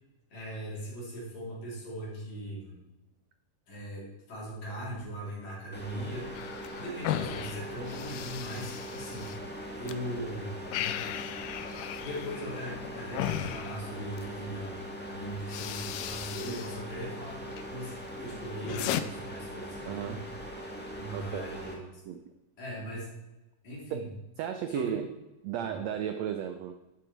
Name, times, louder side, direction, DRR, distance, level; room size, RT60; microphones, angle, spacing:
voice 1, 0.3-2.8 3.7-6.4 6.7-9.3 9.8-10.6 12.0-18.0 18.2-20.2 21.0-21.9 22.6-23.2 23.6-24.1 24.7-24.9 25.6-25.8, equal, 55° left, -6 dB, 5.0 m, -39 dB
sound 1, 5.7-21.7, equal, 5° left, 0.8 m, -41 dB
sound 2, 6.3-10.0 10.3-14.3 15.0-15.1 15.4-16.8 17.1-17.7 18.1-19.0, left 12 dB, 85° left, 2.2 m, -37 dB
voice 2, 19.8-20.3 21.1-21.5 22.0-22.2 23.9-24.1 24.4-25.1 25.4-26.8, right 9 dB, 80° right, 8 dB, 1.5 m, -34 dB
12.5 x 7.9 x 4.6 m, 1.0 s
omnidirectional pair, 3.8 m